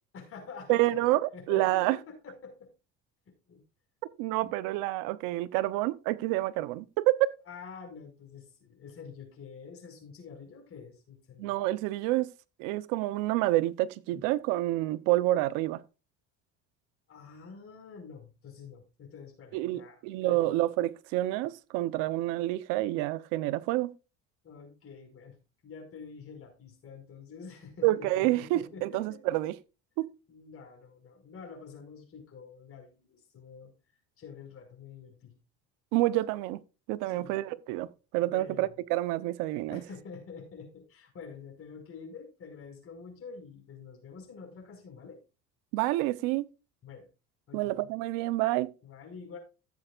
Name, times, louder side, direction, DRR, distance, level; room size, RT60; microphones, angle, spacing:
voice 1, 0.1-1.0 1.3-2.7 3.3-3.6 4.4-4.5 7.5-11.5 14.1-14.2 17.1-20.6 24.4-25.4 25.6-29.2 30.3-33.7 34.2-35.4 37.0-37.5 38.2-38.7 39.7-45.2 46.8-47.1 47.5-48.0 48.8-49.4, left 5 dB, 45° left, 5.3 m, -47 dB
voice 2, 0.7-2.0 4.2-7.3 11.4-12.3 12.6-15.8 19.5-23.9 27.8-29.5 30.0-30.1 35.9-36.6 36.9-39.8 45.7-46.5 47.5-48.7, right 17 dB, 85° right, 0.8 m, -28 dB
15.5 x 7.9 x 2.4 m
cardioid pair, 115°, 32 cm